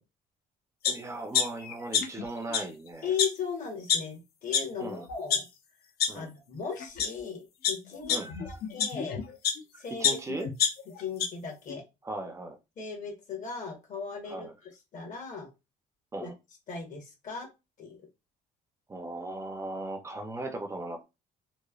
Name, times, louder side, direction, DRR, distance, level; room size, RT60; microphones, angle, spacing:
sound 1, 0.8-0.9 1.3-2.2 2.5-2.6 3.2-3.3 3.9-4.0 4.5-4.6 5.1-5.4 6.0-6.1 6.8-7.1 7.6-9.6 10.0-11.3 11.7-11.8, left 7 dB, 65° left, 0.6 m, -26 dB
voice 1, 0.9-3.1 4.8-5.1 6.1-6.3 8.1-8.5 9.7-10.5 12.0-12.6 14.3-14.5 16.1-16.3 18.9-21.1, right 2 dB, 15° right, 5 dB, 0.5 m, -38 dB
voice 2, 3.0-5.5 6.1-8.2 8.4-9.2 9.8-10.5 11.0-11.8 12.8-15.5 16.2-16.3 16.7-17.5 17.8-18.0, left 6 dB, 50° left, 2 dB, 1.1 m, -37 dB
3.0 x 2.1 x 2.3 m, 0.25 s
cardioid pair, 110°, 17 cm